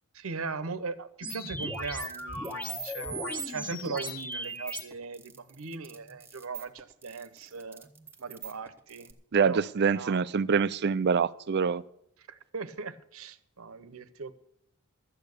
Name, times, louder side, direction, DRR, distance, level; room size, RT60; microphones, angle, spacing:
voice 1, 0.1-7.9 8.2-9.1 9.4-10.2 12.3-14.3, right 4 dB, 70° right, 0.9 m, -39 dB
sound 1, 1.2-4.8, equal, 5° left, 1.5 m, -36 dB
sound 2, 1.6-9.1, right 10 dB, 10° right, 1.1 m, -49 dB
voice 2, 9.3-11.8, right 5 dB, 50° right, 0.4 m, -25 dB
13.0 x 8.6 x 6.7 m
head